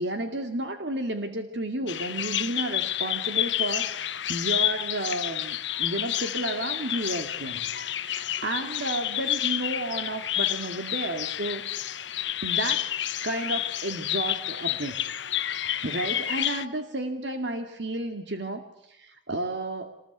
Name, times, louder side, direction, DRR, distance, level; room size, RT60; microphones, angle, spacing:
voice 1, 0.0-12.0 12.4-12.8 13.2-15.0 15.4-19.9, right 1 dB, 65° right, 6 dB, 2.3 m, -32 dB
Bird vocalization bird call bird song, 1.9-16.7, left 12 dB, 70° left, 1.0 m, -30 dB
27.0 x 21.0 x 9.3 m, 0.82 s
head